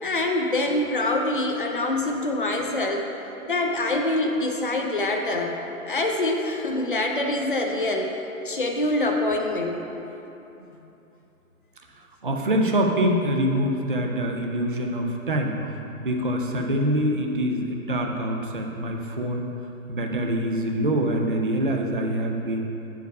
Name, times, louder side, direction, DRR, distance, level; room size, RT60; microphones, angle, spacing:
voice 1, 0.0-3.1 3.4-5.6 5.9-8.1 8.4-9.8, left 2 dB, 40° left, 2 dB, 0.5 m, -25 dB
voice 2, 11.9-19.5 19.9-22.7, right 1 dB, 40° right, 2 dB, 0.4 m, -25 dB
8.0 x 4.7 x 4.6 m, 3.0 s
hypercardioid pair, 175°, 44 cm